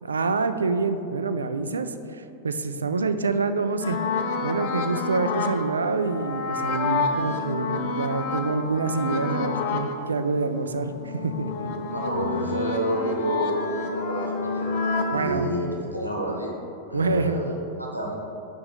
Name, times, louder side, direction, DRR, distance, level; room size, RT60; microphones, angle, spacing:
voice 1, 0.0-4.0 4.4-11.7 15.1-15.5 16.9-17.4, right 4 dB, 75° right, 10 dB, 0.3 m, -26 dB
sound 1, 3.8-9.9 10.4-15.2, left 4 dB, 45° left, 0.6 m, -29 dB
voice 2, 11.9-14.7 15.1-16.5 16.9-17.5 17.8-18.1, equal, 90° right, -1 dB, 0.9 m, -28 dB
5.1 x 4.8 x 5.5 m, 2.8 s
figure-of-eight pair, 90°, 0 cm